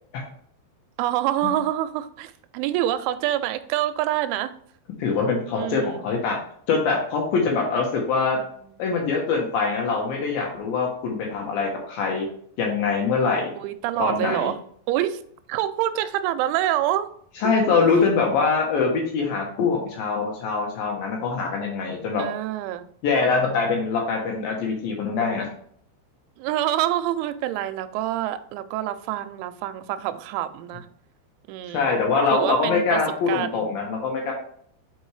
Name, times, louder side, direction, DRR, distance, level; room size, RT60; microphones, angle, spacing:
voice 1, 1.0-4.5 5.5-6.0 8.4-8.9 13.6-14.6 14.9-15.2 15.5-17.1 17.4-17.9 22.2-22.9 26.4-30.9 31.5-32.0 32.3-33.0 33.3-33.6, right 13 dB, 90° right, 11 dB, 3.0 m, -26 dB
voice 2, 5.0-6.4 6.7-8.4 8.8-12.3 12.6-13.5 14.0-14.5 17.4-22.2 23.0-25.5 31.7-34.3, left 4 dB, 75° left, 0 dB, 2.2 m, -23 dB
7.7 x 4.6 x 3.2 m, 0.62 s
omnidirectional pair, 5.3 m